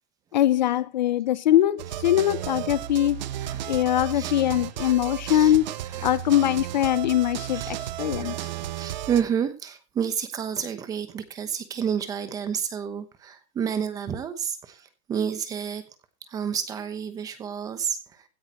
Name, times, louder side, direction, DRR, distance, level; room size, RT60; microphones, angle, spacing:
voice 1, 0.3-3.2 3.7-5.7 6.0-8.5, left 12 dB, 40° left, 17 dB, 0.6 m, -22 dB
sound 1, 1.8-9.2, right 12 dB, 40° right, 0.9 m, -33 dB
voice 2, 3.4-3.7 4.1-4.3 4.8-5.6 5.8-6.1 7.5-15.8 16.3-18.2, right 8 dB, 10° right, 11 dB, 1.0 m, -30 dB
16.5 x 10.5 x 3.0 m, 0.31 s
hypercardioid pair, 170°, 34 cm